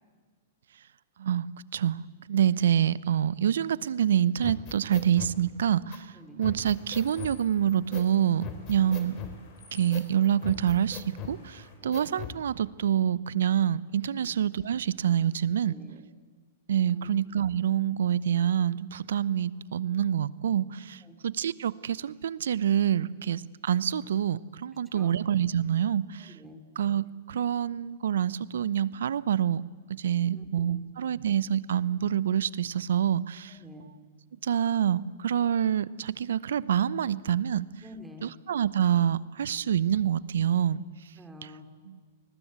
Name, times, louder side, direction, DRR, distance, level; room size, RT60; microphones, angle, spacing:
voice 1, 2.3-9.2 9.7-15.7 16.7-26.3 26.8-29.6 29.9-33.6 34.4-37.7 38.2-40.8 41.9-42.0, right 9 dB, 75° right, 19 dB, 0.8 m, -27 dB
sound 1, 4.4-5.4 5.9-6.0 6.4-7.4 7.9-8.1 8.4-9.4 9.9-10.1 10.4-11.4 11.9-12.4, left 9 dB, 35° left, 3.8 m, -39 dB
sound 2, 6.7-11.7, left 5 dB, 55° left, 6.3 m, -55 dB
voice 2, 11.8-12.1 14.2-14.3 15.5-16.0 16.8-17.1 21.0-21.2 24.9-25.1 26.3-26.6 30.3-30.9 33.5-33.9 37.8-38.3 41.2-41.7, equal, 10° right, 4 dB, 3.1 m, -49 dB
28.0 x 20.0 x 8.3 m, 1.5 s
hypercardioid pair, 115°, 0 cm